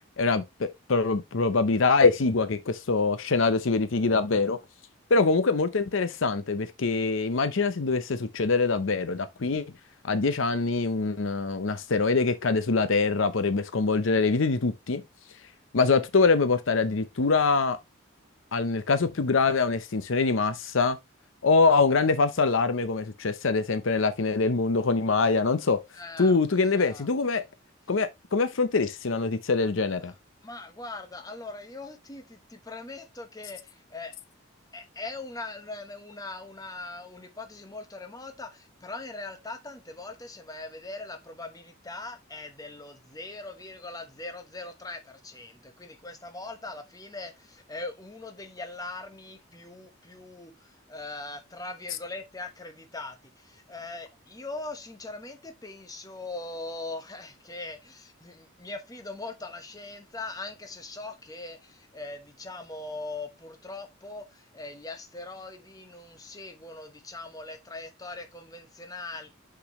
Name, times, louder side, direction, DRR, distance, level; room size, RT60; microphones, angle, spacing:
voice 1, 0.2-4.6 5.1-9.6 10.0-15.0 15.7-17.8 18.5-21.0 21.4-25.8 26.2-27.4 27.9-30.1, left 4 dB, 70° left, 0.7 m, -24 dB
voice 2, 25.9-27.1 30.4-34.1 34.7-69.3, left 2 dB, 15° left, 1.0 m, -41 dB
6.0 x 5.9 x 3.1 m
head